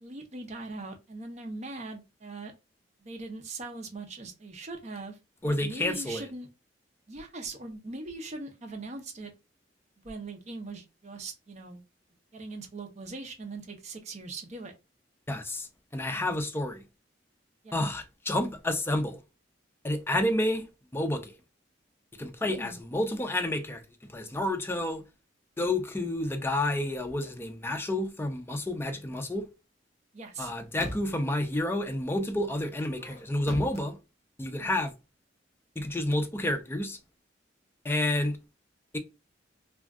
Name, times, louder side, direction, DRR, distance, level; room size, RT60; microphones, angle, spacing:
voice 1, 0.0-2.5 3.0-5.2 5.4-6.5 7.1-9.3 10.0-11.8 12.3-14.7 17.6-17.7 22.4-22.8 30.1-30.5, right 3 dB, 40° right, 0.6 m, -41 dB
voice 2, 5.4-6.2 15.3-16.8 17.7-19.2 19.8-20.7 20.9-21.4 22.2-23.8 24.1-25.0 25.6-29.5 30.4-34.0 34.4-34.9 35.8-37.0 37.8-38.4 38.9-39.0, left 1 dB, 15° left, 0.4 m, -30 dB
sound 1, 26.9-27.4 30.2-31.3 32.7-33.8, left 1 dB, 35° left, 0.8 m, -41 dB
2.5 x 2.3 x 3.4 m
head